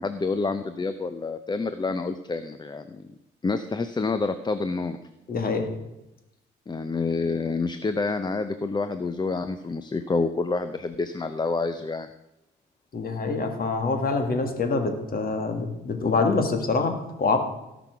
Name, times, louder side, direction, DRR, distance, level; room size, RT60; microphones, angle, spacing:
voice 1, 0.0-3.0 3.4-5.0 6.7-12.1, left 3 dB, 20° left, 10 dB, 0.7 m, -28 dB
voice 2, 5.3-5.7 12.9-17.4, left 3 dB, 50° left, 5 dB, 2.2 m, -25 dB
16.5 x 6.1 x 6.0 m, 0.93 s
cardioid pair, 90°, 20 cm